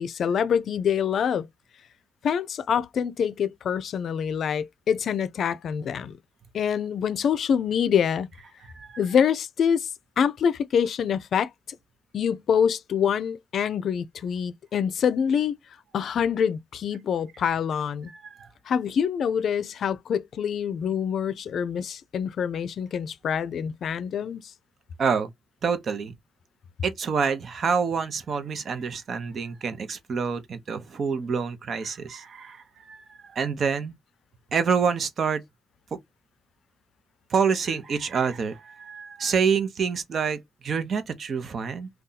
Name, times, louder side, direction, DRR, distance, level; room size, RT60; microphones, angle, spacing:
voice 1, 0.0-1.5 2.2-6.2 6.5-8.3 9.0-9.9 10.2-11.5 12.1-15.6 15.9-18.1 18.7-24.5, left 7 dB, 70° left, 0.4 m, -25 dB
voice 2, 18.1-18.5 25.0-25.3 25.6-26.1 26.8-33.9 34.5-35.4 37.3-41.9, right 6 dB, 60° right, 0.7 m, -27 dB
2.7 x 2.3 x 3.8 m
cardioid pair, 80°, 0 cm